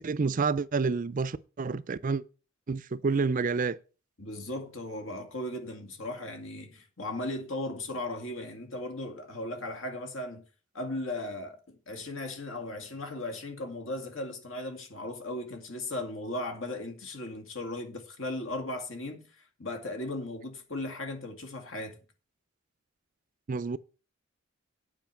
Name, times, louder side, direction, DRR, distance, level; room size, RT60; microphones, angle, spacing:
voice 1, 0.0-2.2 2.7-3.8 23.5-23.8, right 4 dB, 40° right, 0.4 m, -29 dB
voice 2, 4.2-10.5 10.7-22.0, left 1 dB, 70° left, 2.3 m, -37 dB
9.2 x 5.0 x 7.3 m
head